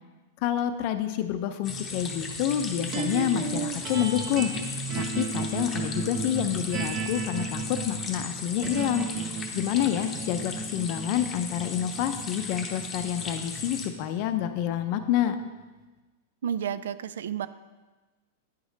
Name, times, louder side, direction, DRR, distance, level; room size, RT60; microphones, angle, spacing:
voice 1, 0.4-4.5 4.9-9.1 9.5-15.4, left 11 dB, 45° left, 9 dB, 0.5 m, -28 dB
sound 1, 1.6-13.9, left 3 dB, 20° left, 0.8 m, -36 dB
sound 2, 2.9-15.2, right 5 dB, 30° right, 0.7 m, -35 dB
voice 2, 16.4-17.5, right 8 dB, 85° right, 15 dB, 0.3 m, -31 dB
9.4 x 5.0 x 4.0 m, 1.2 s
supercardioid pair, 155°, 0 cm